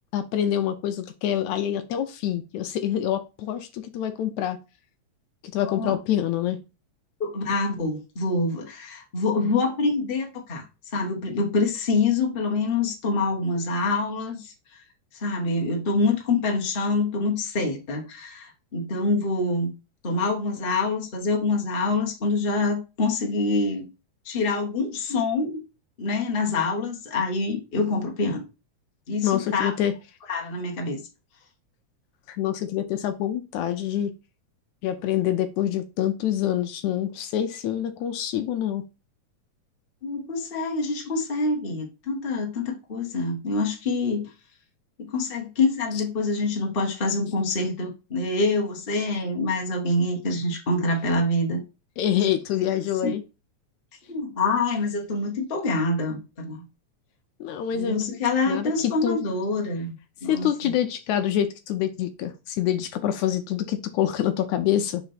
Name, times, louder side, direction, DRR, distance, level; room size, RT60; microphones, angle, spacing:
voice 1, 0.1-4.6 5.5-6.6 29.2-29.9 32.3-34.1 34.8-38.8 52.0-53.2 57.4-58.1 58.5-59.2 60.3-65.0, left 10 dB, 75° left, 1.9 m, -26 dB
voice 2, 7.2-10.6 10.9-14.5 15.2-19.7 20.0-23.9 24.2-25.6 26.0-28.4 29.1-29.7 30.3-31.0 40.0-44.3 45.0-51.6 52.1-52.2 52.7-53.2 54.1-56.6 57.7-60.0 60.2-60.7, left 3 dB, 30° left, 1.0 m, -26 dB
5.0 x 4.5 x 5.6 m
omnidirectional pair, 3.6 m